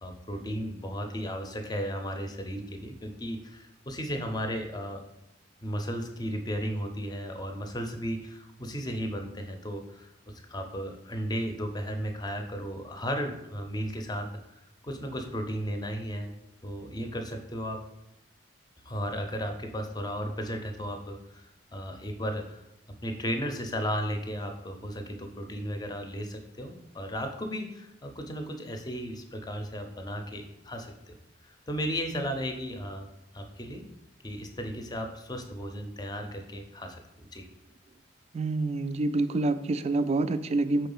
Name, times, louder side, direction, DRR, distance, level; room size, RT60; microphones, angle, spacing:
voice 1, 0.0-5.0 5.6-14.3 14.8-16.3 16.6-17.8 18.8-22.6 23.0-31.1 31.7-33.1 33.3-33.8 34.2-37.4, equal, 20° left, 5 dB, 0.6 m, -35 dB
voice 2, 38.3-40.9, right 2 dB, 35° right, 12 dB, 0.3 m, -27 dB
4.5 x 3.8 x 5.5 m, 0.85 s
head